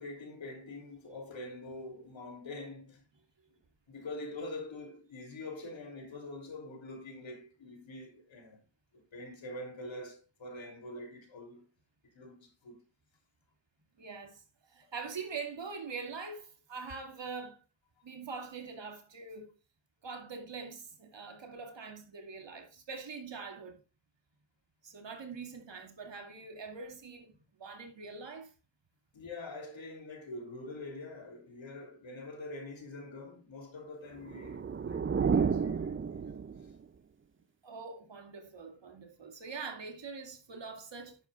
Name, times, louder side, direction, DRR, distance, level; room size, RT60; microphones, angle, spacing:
voice 1, 0.0-3.0 3.9-8.6 8.9-11.7 12.0-12.8 18.0-18.1 29.1-36.4, left 2 dB, 80° left, 3.3 m, -45 dB
voice 2, 14.0-17.6 18.0-19.5 20.0-23.8 24.8-28.5 37.6-41.2, right 4 dB, 70° right, 2.4 m, -43 dB
sound 1, 34.2-36.8, right 6 dB, 30° right, 0.5 m, -31 dB
11.0 x 9.2 x 2.4 m
wide cardioid pair, 85°, 45 cm